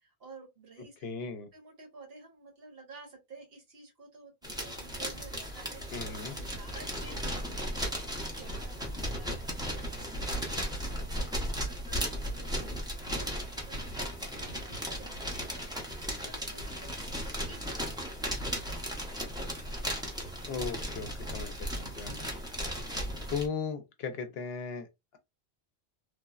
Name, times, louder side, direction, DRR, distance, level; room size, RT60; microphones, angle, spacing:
voice 1, 0.0-1.0 1.5-18.3, right 4 dB, 65° right, 1.4 m, -52 dB
voice 2, 1.0-1.5 5.9-6.3 20.5-22.5 23.3-24.9, left 5 dB, 70° left, 0.8 m, -37 dB
sound 1, 4.4-23.5, equal, 5° right, 0.5 m, -36 dB
3.2 x 2.0 x 2.3 m
omnidirectional pair, 1.1 m